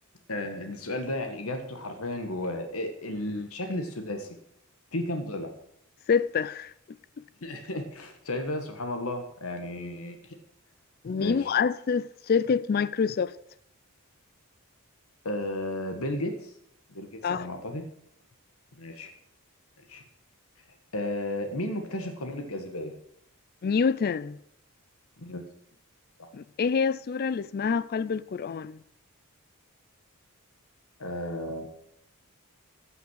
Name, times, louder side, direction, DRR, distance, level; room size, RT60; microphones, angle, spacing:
voice 1, 0.3-4.3 4.9-5.5 7.4-10.3 11.2-11.5 15.2-16.5 16.9-17.9 18.7-19.1 19.9-20.0 20.9-22.9 25.2-25.4 26.2-26.3 31.0-31.7, left 1 dB, 70° left, 1.5 m, -33 dB
voice 2, 6.1-7.0 11.0-13.3 17.2-17.5 23.6-24.4 26.3-28.8, left 6 dB, 45° left, 0.3 m, -26 dB
15.5 x 5.9 x 6.3 m
head